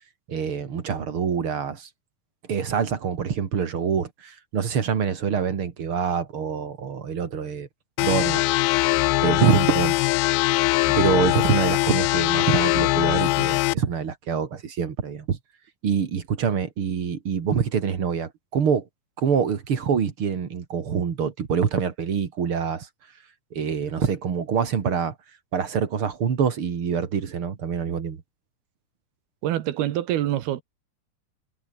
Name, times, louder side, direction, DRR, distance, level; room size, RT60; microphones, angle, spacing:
voice 1, 0.3-1.9 2.5-7.7 8.0-8.5 9.2-9.9 10.9-15.4 15.8-18.9 19.2-22.9 23.5-25.1 25.5-28.2, right 7 dB, 40° right, 2.2 m, -25 dB
sound 1, 8.0-13.7, left 22 dB, 85° left, 2.1 m, -21 dB
voice 2, 29.4-30.6, right 13 dB, 70° right, 3.1 m, -25 dB
omnidirectional pair, 4.9 m